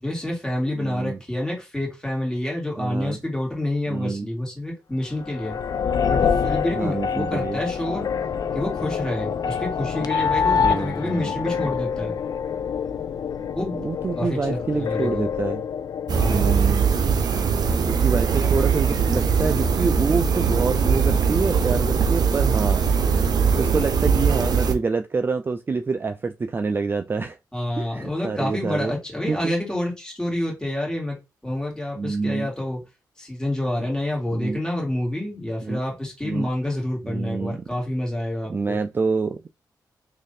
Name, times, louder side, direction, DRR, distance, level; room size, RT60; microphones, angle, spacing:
voice 1, 0.0-5.6 6.1-8.1 8.5-12.2 13.6-13.8 14.1-15.3 16.1-16.7 27.5-31.2 31.4-32.8 33.2-38.8, left 1 dB, 10° left, 2.0 m, -28 dB
voice 2, 0.8-1.2 2.8-3.2 3.9-4.3 6.7-7.6 10.0-10.1 10.5-11.7 13.7-15.6 16.3-16.9 17.9-27.4 27.8-28.9 29.3-29.5 32.0-32.5 34.3-34.6 35.6-35.8 36.2-36.5 37.0-37.6 38.5-39.5, right 4 dB, 30° right, 0.3 m, -27 dB
sound 1, 5.2-16.5, left 6 dB, 65° left, 0.4 m, -26 dB
sound 2, 16.1-24.7, right 6 dB, 65° right, 0.6 m, -21 dB
3.1 x 2.6 x 4.0 m
cardioid pair, 85°, 7 cm